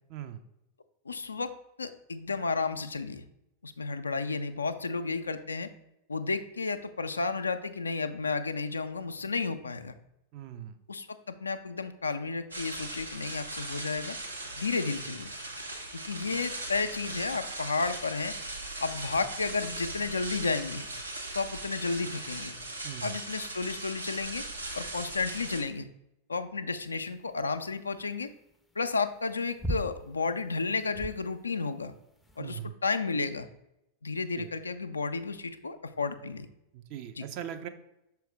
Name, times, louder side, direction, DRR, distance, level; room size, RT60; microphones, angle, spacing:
voice 1, 0.1-0.4 10.3-10.8 22.8-23.2 32.4-32.8 34.3-34.5 36.7-37.7, right 10 dB, 45° right, 8 dB, 0.5 m, -40 dB
voice 2, 1.1-1.5 1.8-3.2 3.6-5.7 6.1-9.9 10.9-14.2 14.6-15.3 15.9-18.3 18.8-20.9 21.3-22.6 23.0-24.4 24.7-25.9 26.3-28.3 28.8-31.9 32.4-33.5 34.0-36.5 37.2-37.3, left 4 dB, 75° left, 9 dB, 0.4 m, -32 dB
sound 1, 12.5-25.6, right 2 dB, 80° right, 0.8 m, -39 dB
sound 2, 26.8-32.4, equal, 5° left, 0.5 m, -39 dB
6.1 x 4.5 x 3.4 m, 0.87 s
figure-of-eight pair, 90°, 0 cm